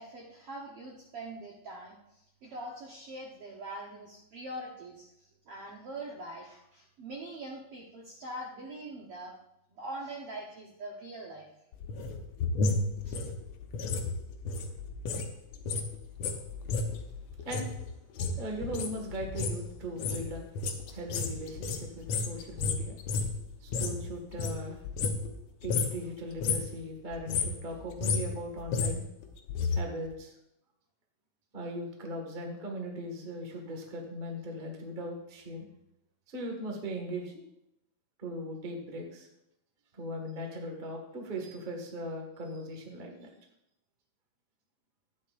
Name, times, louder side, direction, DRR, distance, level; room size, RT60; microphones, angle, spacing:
voice 1, 0.0-9.3 9.7-11.5 13.0-13.2, right 1 dB, 70° right, -2 dB, 1.4 m, -43 dB
sound 1, 11.7-15.3 15.5-24.0 24.3-25.4 25.6-26.0 26.3-26.8 27.1-29.8 30.1-30.2, left 4 dB, 70° left, 1.7 m, -32 dB
voice 2, 18.4-20.4 20.9-23.0 23.6-24.8 25.6-29.1 29.7-30.3 31.5-35.6 36.3-37.4 38.2-39.3 39.9-43.3, equal, 45° right, 1 dB, 0.6 m, -39 dB
13.0 x 9.4 x 2.5 m, 0.84 s
omnidirectional pair, 3.9 m